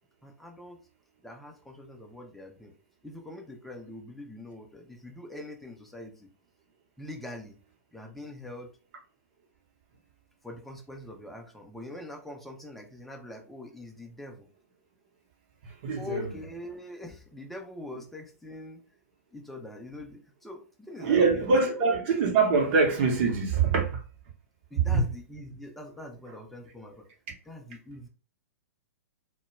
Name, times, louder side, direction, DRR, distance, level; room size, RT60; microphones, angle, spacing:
voice 1, 0.2-0.8 1.2-2.7 3.0-6.3 7.0-7.6 7.9-8.7 10.4-14.5 16.0-18.8 19.3-21.6 24.7-27.1 27.5-28.1, left 1 dB, ahead, 0.5 m, -43 dB
voice 2, 15.6-16.3 21.0-24.0 24.8-25.0, right 4 dB, 45° right, 0.8 m, -24 dB
2.1 x 2.1 x 2.8 m
figure-of-eight pair, 110°, 8 cm